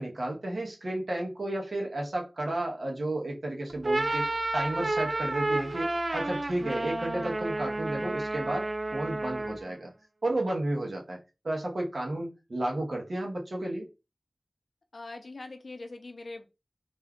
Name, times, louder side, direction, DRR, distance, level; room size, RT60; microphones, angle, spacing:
voice 1, 0.0-4.3 4.5-9.9 10.2-11.2 11.4-13.9, right 1 dB, 75° right, 0.9 m, -32 dB
sound 1, 3.7-9.7, right 2 dB, 55° right, 0.4 m, -31 dB
voice 2, 14.9-16.5, left 2 dB, 75° left, 0.5 m, -42 dB
2.6 x 2.3 x 3.5 m
wide cardioid pair, 70°, 0 cm